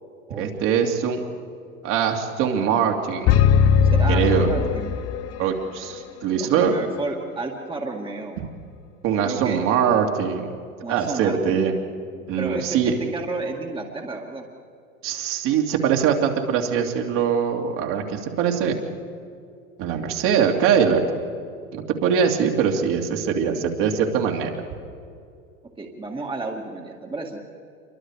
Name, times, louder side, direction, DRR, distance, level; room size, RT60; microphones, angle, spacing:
voice 1, 0.4-1.2 1.8-3.4 4.1-4.5 5.4-6.7 9.0-10.5 10.9-11.7 12.3-12.9 15.0-18.8 19.8-21.0 21.7-24.5, right 7 dB, 45° right, 1 dB, 2.9 m, -22 dB
sound 1, 3.3-5.4, left 6 dB, 35° left, 1.2 m, -18 dB
voice 2, 3.8-4.9 6.4-8.4 9.2-9.6 10.8-11.7 12.4-14.5 25.8-27.4, right 3 dB, 10° right, 1 dB, 2.1 m, -32 dB
28.0 x 23.5 x 4.9 m, 2.4 s
figure-of-eight pair, 90°, 42 cm